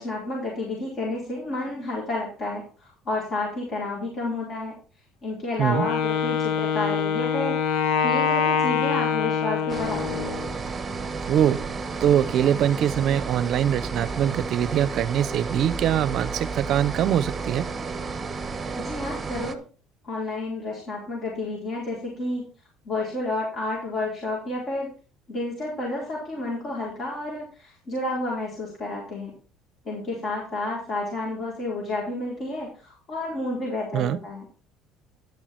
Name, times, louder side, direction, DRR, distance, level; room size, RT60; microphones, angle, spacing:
voice 1, 0.0-4.8 5.2-7.6 8.0-10.3 18.7-19.6 20.0-22.4 22.8-24.9 25.3-29.3 29.8-34.5, left 2 dB, 35° left, -4 dB, 4.3 m, -30 dB
Wind instrument woodwind instrument, 5.7-10.5, left 7 dB, 75° left, 1.3 m, -24 dB
sound 1, 9.7-19.6, right 4 dB, 20° right, 1.1 m, -32 dB
voice 2, 11.3-11.6 12.0-17.6 33.9-34.2, right 10 dB, 50° right, 16 dB, 0.7 m, -23 dB
10.5 x 6.2 x 4.6 m, 0.35 s
cardioid pair, 140°, 0 cm